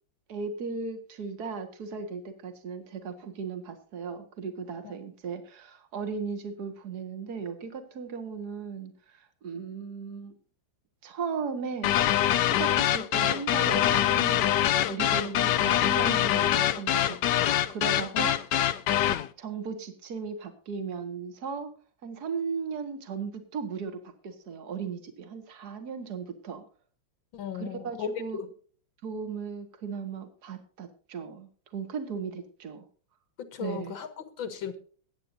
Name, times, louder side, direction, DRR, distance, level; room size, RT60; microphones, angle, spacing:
voice 1, 0.3-10.4 11.0-11.9 12.4-14.5 14.9-18.4 19.4-21.7 22.0-26.6 27.5-28.4 29.0-32.8 33.6-33.9, right 5 dB, 55° right, 7 dB, 2.2 m, -36 dB
sound 1, 11.8-19.3, left 12 dB, 70° left, 1.2 m, -24 dB
voice 2, 27.3-28.1 28.4-28.5 33.4-34.8, left 8 dB, 85° left, 9 dB, 2.4 m, -37 dB
22.0 x 9.4 x 2.6 m, 0.43 s
omnidirectional pair, 2.1 m